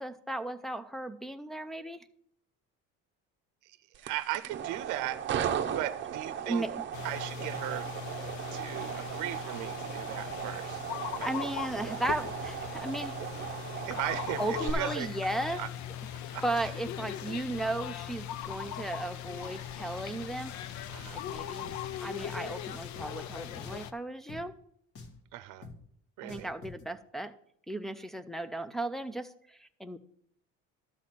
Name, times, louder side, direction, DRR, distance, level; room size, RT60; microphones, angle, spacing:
voice 1, 0.0-2.1 6.4-6.7 11.2-13.2 14.4-15.6 16.4-24.6 26.2-27.3 27.7-30.0, right 2 dB, ahead, 6 dB, 0.4 m, -36 dB
voice 2, 3.6-5.3 5.7-6.7 7.0-7.9 8.5-10.8 11.1-11.3 13.9-15.2 15.5-15.7 16.3-16.7 20.9-21.2 25.3-25.7 26.2-26.5, right 14 dB, 65° right, 13 dB, 0.7 m, -37 dB
sound 1, 3.9-14.7, right 9 dB, 35° right, 0.8 m, -37 dB
sound 2, 6.9-23.9, left 10 dB, 60° left, 0.7 m, -40 dB
Drum, 21.6-21.8 22.3-22.5 23.0-23.1 23.6-23.9 24.3-24.4 25.0-25.2 25.6-25.8 26.3-26.8, left 3 dB, 45° left, 1.4 m, -46 dB
12.5 x 4.2 x 7.3 m, 0.67 s
cardioid pair, 155°, 33 cm